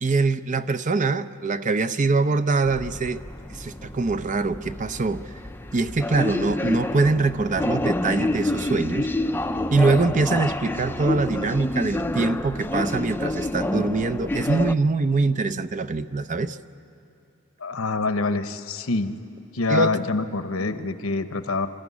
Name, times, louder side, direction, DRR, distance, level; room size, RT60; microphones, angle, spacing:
voice 1, 0.0-3.2 3.5-5.2 5.7-9.1 9.7-16.6 19.7-20.0, right 3 dB, 40° right, 12 dB, 0.6 m, -23 dB
sound 1, 2.6-14.7, left 2 dB, 10° left, 0.5 m, -28 dB
voice 2, 17.6-19.1 19.5-21.7, left 3 dB, 80° left, 10 dB, 1.0 m, -25 dB
27.5 x 13.5 x 9.6 m, 2.5 s
head